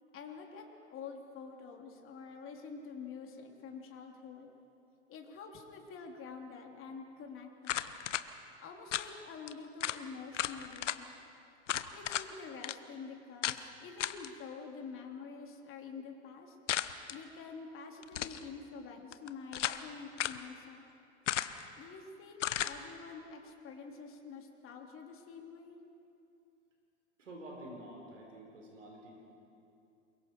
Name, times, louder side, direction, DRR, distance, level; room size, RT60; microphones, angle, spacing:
voice 1, 0.1-4.5 5.1-7.8 8.6-11.1 11.9-16.6 17.1-20.8 21.7-25.8, left 5 dB, 35° left, 2 dB, 3.3 m, -47 dB
sound 1, 7.6-8.2 8.9-9.1 9.5-9.6 9.8-10.0 10.3-11.0 11.7-12.3 12.6-12.8 13.4-13.6 14.0-14.3 16.7-17.2 18.0-18.4 19.1-19.8 20.2-20.4 21.3-21.7 22.4-22.8, left 11 dB, 80° left, 1.0 m, -34 dB
voice 2, 27.2-29.2, right 1 dB, 90° right, 0 dB, 4.5 m, -49 dB
29.0 x 22.5 x 4.6 m, 2.7 s
hypercardioid pair, 100°, 36 cm